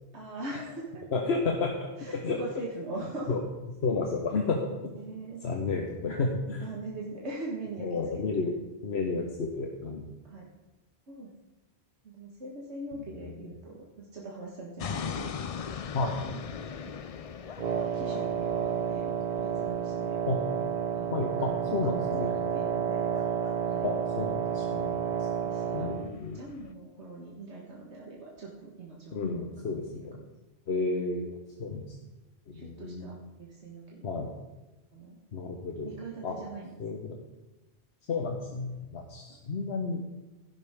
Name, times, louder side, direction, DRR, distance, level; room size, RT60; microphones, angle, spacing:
voice 1, 0.1-1.1 2.0-3.4 4.9-5.4 6.6-8.2 10.2-10.5 11.1-11.3 12.0-15.3 15.8-16.9 17.9-20.2 20.9-23.1 23.6-23.9 25.4-30.3 32.5-34.3 34.9-35.2 35.8-36.8, right 2 dB, 90° right, -3 dB, 1.9 m, -42 dB
voice 2, 1.1-1.9 2.2-2.4 3.3-3.4 3.8-4.9 5.4-6.7 7.8-8.5 8.8-10.1 15.9-16.2 20.3-20.4 21.1-22.3 23.8-25.3 25.7-26.4 29.1-30.2 30.7-31.3 31.6-32.0 32.5-33.1 34.0-34.3 35.3-35.9 36.2-36.4 36.8-37.2 38.1-40.0, left 3 dB, 75° left, 2 dB, 1.4 m, -31 dB
sound 1, 14.8-26.7, left 7 dB, 50° left, 0.4 m, -42 dB
Wind instrument woodwind instrument, 17.6-26.1, right 8 dB, 50° right, 0.6 m, -30 dB
16.5 x 11.0 x 3.6 m, 1.1 s
omnidirectional pair, 1.1 m